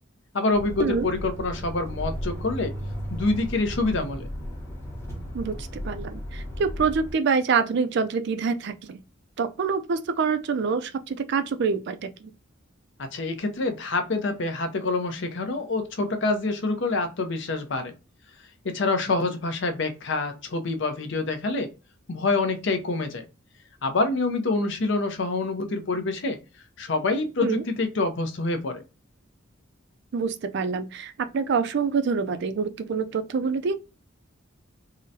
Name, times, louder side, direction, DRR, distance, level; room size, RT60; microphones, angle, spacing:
voice 1, 0.3-2.7 3.1-4.3 13.0-17.9 18.6-21.7 22.1-23.2 23.8-26.4 26.8-28.8, left 3 dB, 60° left, 0.6 m, -26 dB
sound 1, 0.5-7.1, equal, 10° left, 0.9 m, -35 dB
voice 2, 5.3-9.0 9.4-12.3 27.4-27.6 30.1-33.7, right 5 dB, 55° right, 0.4 m, -26 dB
3.7 x 2.1 x 2.6 m
head